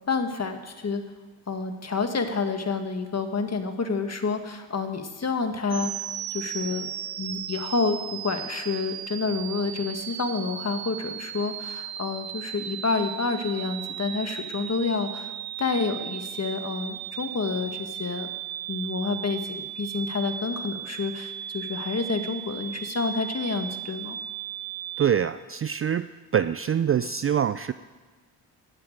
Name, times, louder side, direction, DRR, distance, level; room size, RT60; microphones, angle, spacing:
voice 1, 0.1-1.0 1.5-5.9 6.3-6.9 7.2-15.3 15.6-18.3 18.7-24.2, left 4 dB, 35° left, 7 dB, 1.7 m, -29 dB
sound 1, 5.7-25.1, right 10 dB, 55° right, 0.8 m, -36 dB
voice 2, 25.0-26.1 26.3-27.7, right 8 dB, 30° right, 14 dB, 0.4 m, -24 dB
11.0 x 8.7 x 9.1 m, 1.3 s
supercardioid pair, 60°, 44 cm